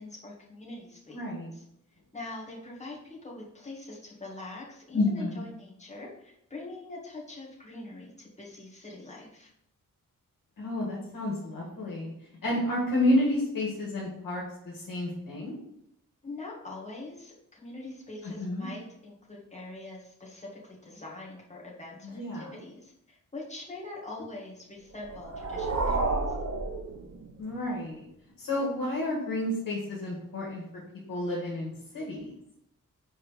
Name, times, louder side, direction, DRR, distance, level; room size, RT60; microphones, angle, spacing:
voice 1, 0.0-1.2 1.5-1.6 2.1-9.5 16.2-26.1, left 2 dB, 20° left, -4 dB, 2.1 m, -43 dB
voice 2, 1.1-1.5 4.9-5.5 10.6-12.1 12.4-15.6 18.2-18.7 22.1-22.5 27.4-28.0 28.4-30.6 31.1-32.4, left 1 dB, 75° left, -4 dB, 1.9 m, -30 dB
sound 1, 24.9-27.6, right 3 dB, 50° right, 1.0 m, -31 dB
5.6 x 4.4 x 5.0 m, 0.77 s
wide cardioid pair, 130°, 33 cm